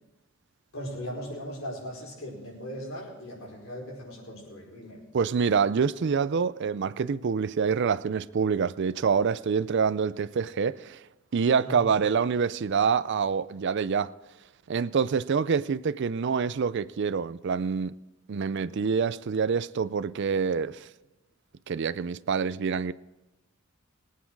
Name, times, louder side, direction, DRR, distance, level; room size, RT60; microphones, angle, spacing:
voice 1, 0.7-5.0 11.6-11.9, equal, 70° left, 5.0 m, -38 dB
voice 2, 5.1-11.0 11.3-14.1 14.7-17.9 18.3-20.9 21.7-22.9, right 6 dB, 55° right, 0.4 m, -26 dB
23.0 x 8.5 x 4.7 m
head